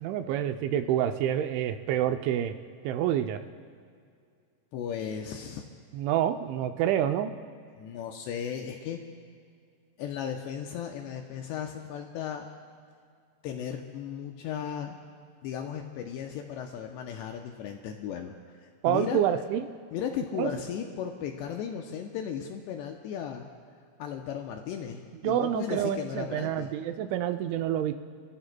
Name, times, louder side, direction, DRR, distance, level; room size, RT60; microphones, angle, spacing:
voice 1, 0.0-2.5 2.8-3.4 5.9-7.3 18.8-19.7 20.4-20.5 25.2-27.9, right 10 dB, 85° right, 8 dB, 2.9 m, -27 dB
voice 2, 4.7-5.6 7.8-9.0 10.0-12.5 13.4-15.0 15.4-18.4 18.6-19.2 19.9-23.5 24.0-26.7, left 8 dB, 85° left, 3 dB, 2.5 m, -36 dB
29.0 x 14.5 x 2.2 m, 2.2 s
omnidirectional pair, 5.5 m